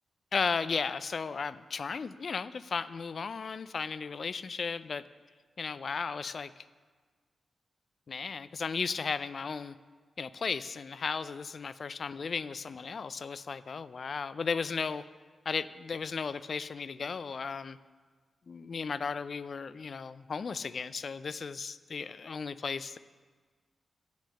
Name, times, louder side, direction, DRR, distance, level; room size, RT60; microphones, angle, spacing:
voice 1, 0.3-5.0 5.6-6.7 8.1-9.8 10.2-15.0 15.5-17.8 18.5-23.0, left 5 dB, 60° left, 15 dB, 0.3 m, -35 dB
6.9 x 6.2 x 7.6 m, 1.5 s
cardioid pair, 55°, 0 cm